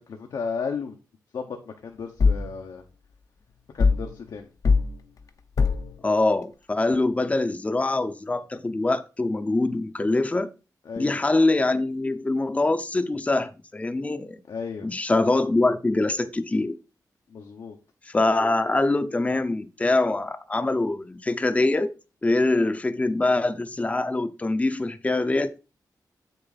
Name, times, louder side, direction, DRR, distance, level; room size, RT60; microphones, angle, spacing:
voice 1, 0.1-1.0 1.3-2.8 3.7-4.5 10.8-11.2 14.5-14.9 17.3-17.8, left 5 dB, 80° left, 1.1 m, -34 dB
sound 1, 2.2-2.5 3.8-4.1 4.6-4.9 5.6-5.9, left 4 dB, 60° left, 0.8 m, -20 dB
voice 2, 6.0-10.5 11.0-14.4 14.8-16.8 18.1-21.9 22.2-25.6, left 2 dB, 20° left, 0.7 m, -24 dB
8.0 x 6.7 x 4.1 m
wide cardioid pair, 115°, 7 cm